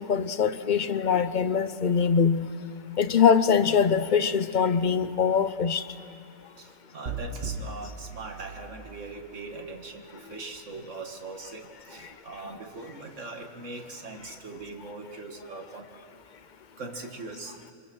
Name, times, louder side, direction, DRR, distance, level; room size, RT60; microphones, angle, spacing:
voice 1, 0.0-2.5 3.0-5.8, left 6 dB, 45° left, 11 dB, 0.6 m, -23 dB
voice 2, 6.6-15.9 16.8-17.6, right 3 dB, 60° right, 4 dB, 2.1 m, -41 dB
sound 1, 7.1-9.2, right 4 dB, 40° right, 1.8 m, -37 dB
27.0 x 24.0 x 6.2 m, 2.5 s
omnidirectional pair, 1.4 m